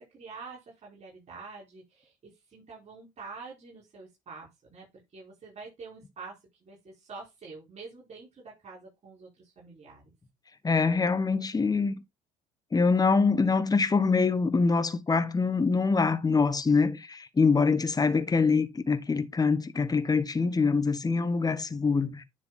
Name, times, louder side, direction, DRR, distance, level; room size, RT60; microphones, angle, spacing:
voice 1, 0.0-4.9 5.1-10.1, right 4 dB, 45° right, 4.8 m, -47 dB
voice 2, 10.6-12.0 12.7-22.2, left 4 dB, 25° left, 1.2 m, -24 dB
10.0 x 3.4 x 4.1 m
supercardioid pair, 75°, 16 cm